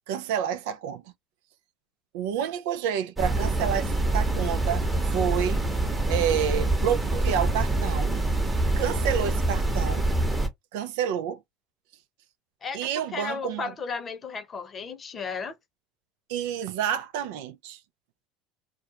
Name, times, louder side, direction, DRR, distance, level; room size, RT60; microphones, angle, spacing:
voice 1, 0.1-1.0 2.1-4.9 5.1-5.6 6.1-8.2 8.8-10.0 10.7-11.4 12.7-13.7 16.3-17.8, right 9 dB, 80° right, 0.4 m, -29 dB
sound 1, 3.2-10.5, right 2 dB, 15° right, 1.0 m, -25 dB
voice 2, 12.6-15.5, left 5 dB, 30° left, 0.8 m, -34 dB
2.4 x 2.1 x 2.8 m
supercardioid pair, 100°, 0 cm